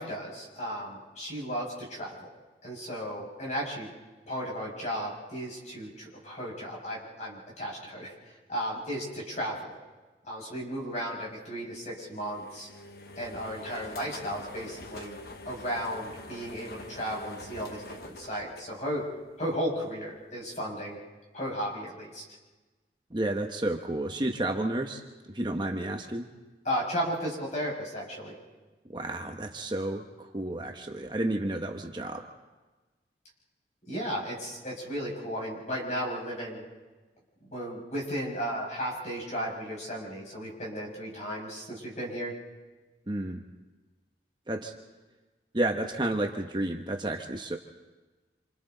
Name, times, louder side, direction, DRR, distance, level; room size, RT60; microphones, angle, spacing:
voice 1, 0.0-2.3 2.6-3.9 4.3-8.1 8.5-9.8 10.2-12.7 13.2-15.2 15.4-19.0 19.4-21.0 21.3-22.2 26.6-28.3 33.9-36.6 37.4-42.3, equal, 40° left, -3 dB, 6.4 m, -34 dB
sound 1, 12.0-19.3, left 2 dB, 60° left, 1.2 m, -45 dB
voice 2, 23.1-25.0 25.3-26.3 28.9-32.3 43.1-43.4 44.5-44.7 45.5-47.6, right 1 dB, 25° right, 2 dB, 1.1 m, -31 dB
27.5 x 27.5 x 4.0 m, 1.2 s
head